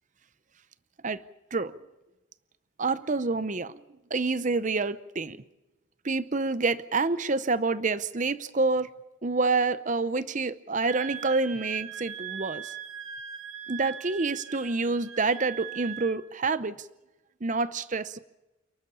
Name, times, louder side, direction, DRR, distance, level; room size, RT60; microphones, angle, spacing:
voice 1, 2.8-3.8 4.1-5.4 6.0-8.9 9.2-12.7 13.7-16.9 17.4-18.2, right 3 dB, 35° right, 15 dB, 0.7 m, -27 dB
Wind instrument woodwind instrument, 10.9-16.2, right 9 dB, 80° right, 2.0 m, -40 dB
29.0 x 12.5 x 8.7 m, 1.0 s
head